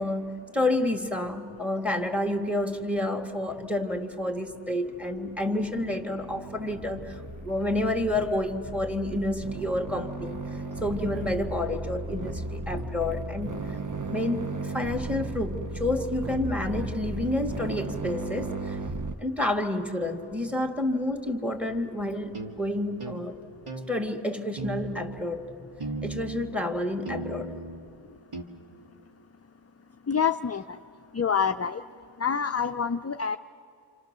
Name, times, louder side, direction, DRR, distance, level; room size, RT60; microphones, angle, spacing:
voice 1, 0.0-10.4 10.8-13.8 14.1-18.8 19.2-23.4 23.9-25.4 26.0-27.5, left 1 dB, 5° right, 5 dB, 2.2 m, -29 dB
sound 1, 5.3-19.2, right 2 dB, 40° right, 0.9 m, -35 dB
sound 2, 22.3-22.6 23.0-23.2 23.7-23.9 24.6-25.2 25.8-26.5 27.1-27.8 28.3-28.4, right 2 dB, 85° right, 1.9 m, -36 dB
voice 2, 30.1-30.6 31.1-31.8 32.2-33.4, left 6 dB, 30° left, 8 dB, 0.5 m, -26 dB
28.5 x 27.0 x 6.8 m, 2.6 s
wide cardioid pair, 45°, 50 cm